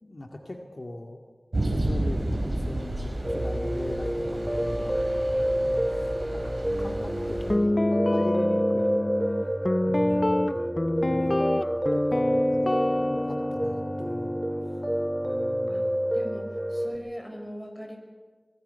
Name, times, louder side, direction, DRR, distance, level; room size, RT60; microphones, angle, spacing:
voice 1, 0.0-1.2 1.6-9.1 9.8-10.6 10.9-11.4 11.9-14.4 15.2-16.0, left 1 dB, 55° left, 2 dB, 2.1 m, -40 dB
sound 1, 1.5-7.5, right 1 dB, 70° right, 5.4 m, -31 dB
Piano, 3.2-17.0, equal, 20° right, 3.6 m, -28 dB
Guitar, 7.5-15.7, left 1 dB, 40° left, 0.7 m, -27 dB
voice 2, 15.7-18.0, equal, 5° left, 3 dB, 5.4 m, -41 dB
23.5 x 23.5 x 5.6 m, 1.4 s
wide cardioid pair, 45°, 0 cm